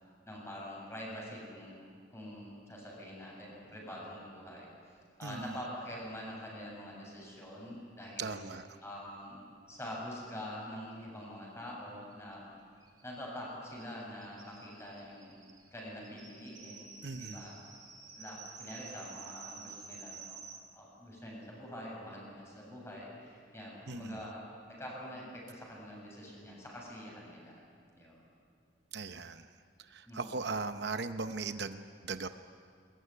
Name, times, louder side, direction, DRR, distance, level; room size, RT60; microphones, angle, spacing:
voice 1, 0.0-1.7 2.1-4.7 5.2-8.4 8.8-12.4 13.0-15.4 15.7-17.6 18.1-20.4 20.7-27.6 27.9-28.2 30.0-30.4, equal, 15° left, -3 dB, 7.8 m, -45 dB
voice 2, 8.2-8.6 17.0-17.5 23.9-24.2 28.9-29.4 29.9-32.3, right 4 dB, 60° right, 9 dB, 0.8 m, -38 dB
sound 1, 10.9-11.0 11.2-11.3 11.6-20.6, right 5 dB, 20° right, 2.7 m, -51 dB
21.5 x 21.5 x 10.0 m, 2.2 s
head